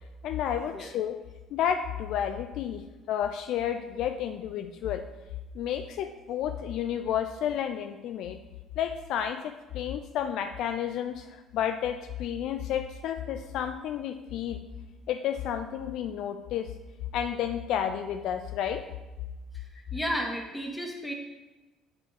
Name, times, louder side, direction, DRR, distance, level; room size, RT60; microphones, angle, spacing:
voice 1, 0.2-1.2 1.5-2.8 3.1-5.0 5.5-8.4 8.8-14.6 15.1-16.7 17.1-18.8, left 9 dB, 65° left, 8 dB, 0.4 m, -31 dB
voice 2, 19.5-21.1, equal, 10° left, 0 dB, 2.0 m, -33 dB
6.2 x 5.1 x 5.8 m, 1.1 s
hypercardioid pair, 60°, 0 cm